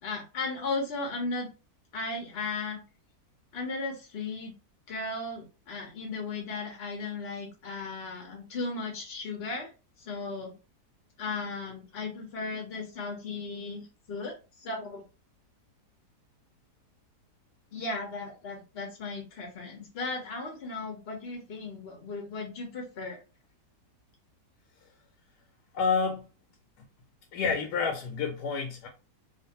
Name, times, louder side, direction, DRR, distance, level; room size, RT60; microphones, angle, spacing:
voice 1, 0.0-1.5 1.9-2.8 3.5-4.5 4.9-9.7 10.0-10.6 11.2-14.3 14.6-15.0 17.7-23.2, left 3 dB, 50° left, 0.7 m, -36 dB
voice 2, 25.7-26.3 27.3-28.9, left 5 dB, 80° left, 1.1 m, -29 dB
2.5 x 2.5 x 2.7 m
omnidirectional pair, 1.8 m